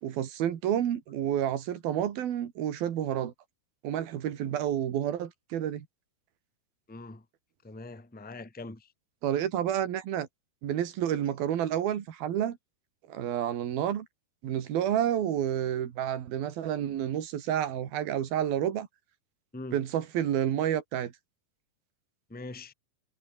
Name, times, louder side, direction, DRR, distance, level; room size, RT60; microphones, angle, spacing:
voice 1, 0.0-3.3 3.8-5.9 9.2-10.3 10.6-12.6 13.1-14.1 14.4-18.9 19.7-21.1, right 10 dB, 70° right, 3.9 m, -29 dB
voice 2, 6.9-7.2 7.6-8.9 19.5-19.7 22.3-22.7, left 2 dB, 5° left, 1.1 m, -42 dB
omnidirectional pair, 4.4 m